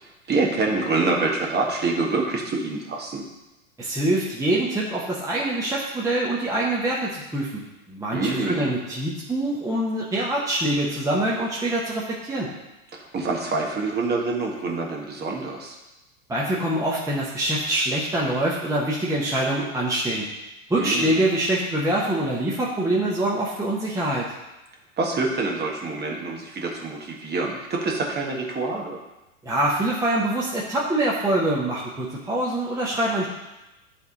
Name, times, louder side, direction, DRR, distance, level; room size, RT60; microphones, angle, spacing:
voice 1, 0.3-3.2 8.1-8.7 12.9-15.8 20.8-21.2 25.0-29.0, right 3 dB, 25° right, 0 dB, 1.5 m, -26 dB
voice 2, 3.8-7.6 7.9-12.5 16.3-20.3 20.7-24.3 29.4-33.3, right 1 dB, 10° right, -5 dB, 1.1 m, -24 dB
10.5 x 3.7 x 4.1 m, 1.0 s
hypercardioid pair, 100°, 41 cm